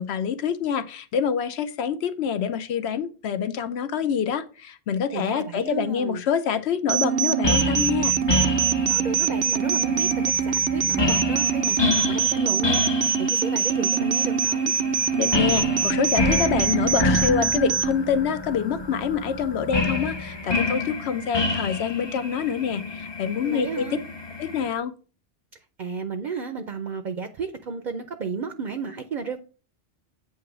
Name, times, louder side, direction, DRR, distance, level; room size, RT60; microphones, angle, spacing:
voice 1, 0.0-8.1 15.2-23.9 24.4-24.9, left 7 dB, 70° left, 0.9 m, -26 dB
voice 2, 5.1-6.2 8.9-12.9 13.2-14.7 23.4-24.0 25.8-29.4, right 5 dB, 50° right, 0.7 m, -33 dB
sound 1, 6.9-17.9, right 7 dB, 85° right, 1.0 m, -24 dB
sound 2, 7.4-24.7, left 2 dB, 30° left, 0.6 m, -28 dB
8.4 x 2.9 x 6.0 m
omnidirectional pair, 1.2 m